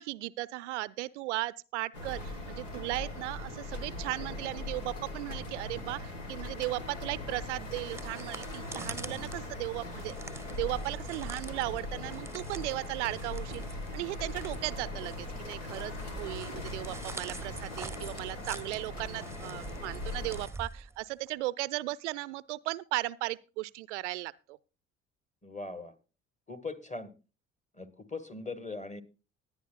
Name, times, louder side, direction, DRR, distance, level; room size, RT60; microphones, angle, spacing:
voice 1, 0.0-10.1 10.6-24.6, right 18 dB, 70° right, 0.5 m, -36 dB
sound 1, 1.9-20.5, left 2 dB, 80° left, 1.5 m, -40 dB
sound 2, 7.7-21.3, right 3 dB, 5° right, 0.8 m, -46 dB
voice 2, 25.4-25.9 26.5-27.1 27.7-29.0, left 3 dB, 20° left, 1.5 m, -40 dB
20.0 x 10.0 x 2.3 m
figure-of-eight pair, 50°, 37 cm